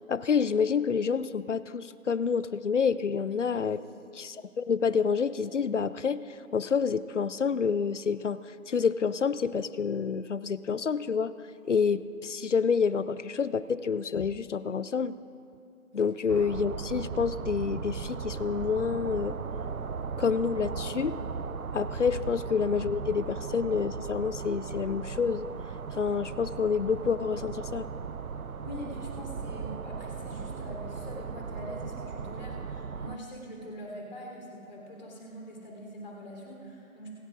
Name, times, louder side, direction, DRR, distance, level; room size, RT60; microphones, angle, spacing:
voice 1, 0.1-3.8 4.1-6.2 6.5-8.4 8.7-11.3 11.6-15.1 15.9-19.4 20.2-21.2 21.7-25.5 26.0-27.9, left 6 dB, 60° left, 16 dB, 0.5 m, -28 dB
sound 1, 16.3-33.2, right 5 dB, 85° right, 0.6 m, -37 dB
voice 2, 28.6-37.1, equal, 40° left, -1 dB, 3.4 m, -43 dB
26.5 x 11.5 x 2.5 m, 2.5 s
figure-of-eight pair, 155°, 42 cm